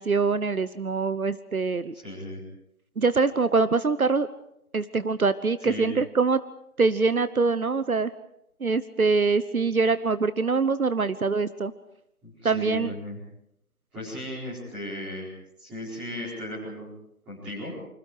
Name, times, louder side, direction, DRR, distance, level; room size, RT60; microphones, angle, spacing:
voice 1, 0.0-1.9 3.0-4.3 4.7-6.4 6.8-8.1 8.6-11.7 12.4-12.9, right 4 dB, 70° right, 14 dB, 1.1 m, -24 dB
voice 2, 1.9-2.4 5.6-5.9 12.2-13.2 13.9-15.3 15.6-16.9 17.2-17.7, left 1 dB, 5° right, -12 dB, 4.9 m, -36 dB
28.0 x 26.0 x 4.9 m, 0.79 s
figure-of-eight pair, 170°, 44 cm